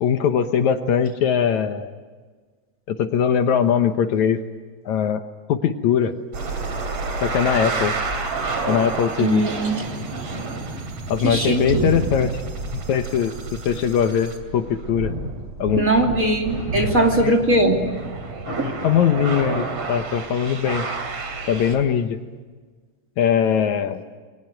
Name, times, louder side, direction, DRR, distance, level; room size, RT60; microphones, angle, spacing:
voice 1, 0.0-1.9 2.9-4.4 4.9-5.2 5.5-6.2 7.2-8.0 8.7-9.5 11.1-12.4 12.7-15.1 15.6-15.9 16.9-17.3 18.5-20.9 21.5-22.2 23.2-24.0, left 8 dB, 70° left, 8 dB, 2.3 m, -21 dB
sound 1, 6.3-21.8, right 3 dB, 50° right, 3.9 m, -29 dB
voice 2, 9.2-9.7 11.2-11.9 15.8-17.7 18.6-18.7, right 1 dB, 25° right, 3 dB, 2.9 m, -20 dB
28.5 x 22.5 x 9.1 m, 1.4 s
omnidirectional pair, 3.6 m